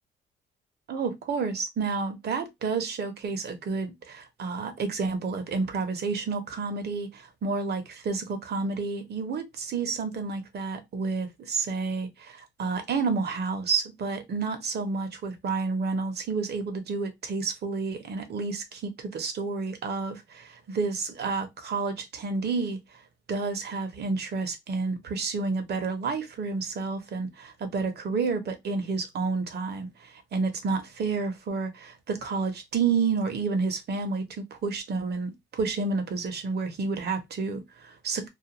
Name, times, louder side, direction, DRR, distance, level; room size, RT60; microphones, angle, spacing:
voice 1, 0.9-22.8 23.3-38.3, right 4 dB, 55° right, 0.8 m, -30 dB
2.4 x 2.2 x 2.8 m
cardioid pair, 90°, 20 cm